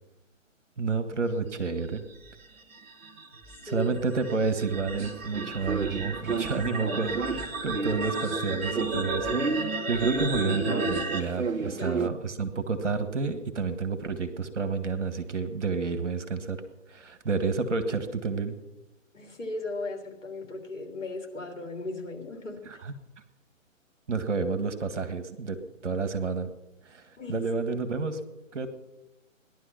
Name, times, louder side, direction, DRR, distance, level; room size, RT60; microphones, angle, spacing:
voice 1, 0.8-2.0 3.6-7.2 7.6-16.6 16.9-18.6 22.8-22.9 24.1-26.5 26.9-28.2 28.5-28.7, right 4 dB, 60° right, 8 dB, 1.9 m, -30 dB
sound 1, 1.9-11.2, right 2 dB, 10° right, 0.6 m, -34 dB
sound 2, 5.0-8.4 8.7-12.1, right 4 dB, 80° right, 0.9 m, -32 dB
voice 2, 6.6-7.0 11.7-12.1 19.1-22.6 27.2-27.4, left 3 dB, 65° left, 2 dB, 3.4 m, -37 dB
17.5 x 11.5 x 5.8 m, 0.96 s
figure-of-eight pair, 135°, 40 cm